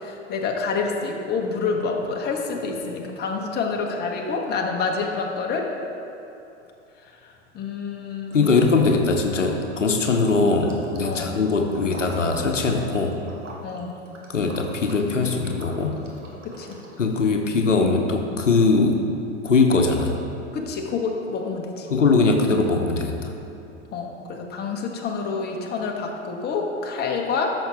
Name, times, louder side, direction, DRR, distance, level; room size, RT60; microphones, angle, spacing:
voice 1, 0.0-5.7 7.5-8.6 11.0-11.4 13.6-13.9 16.4-16.8 20.5-21.9 23.9-27.5, left 4 dB, 25° left, 1 dB, 1.1 m, -28 dB
voice 2, 8.3-13.2 14.3-16.0 17.0-19.1 19.4-20.2 21.9-23.3, left 3 dB, 80° left, 3 dB, 0.9 m, -21 dB
Liquid, 8.3-9.0 9.2-17.2, right 1 dB, 85° right, 1.4 m, -45 dB
13.0 x 6.3 x 3.5 m, 2.8 s
figure-of-eight pair, 90°, 36 cm